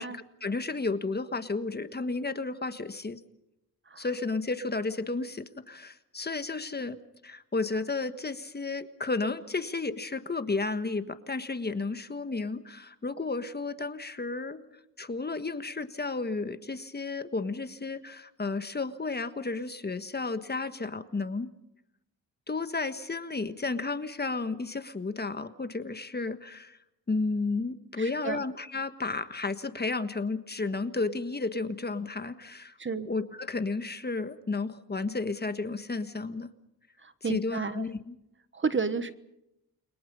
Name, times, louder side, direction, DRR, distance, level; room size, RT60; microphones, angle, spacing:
voice 1, 0.0-3.2 4.0-7.0 7.2-14.6 15.0-21.5 22.5-26.8 27.1-36.5 37.2-38.2, left 3 dB, 25° left, 10 dB, 1.5 m, -32 dB
voice 2, 28.0-28.4 32.8-33.1 37.0-37.8 38.5-39.1, right 5 dB, 30° right, 12 dB, 1.3 m, -31 dB
30.0 x 23.0 x 5.5 m, 0.83 s
cardioid pair, 95°, 37 cm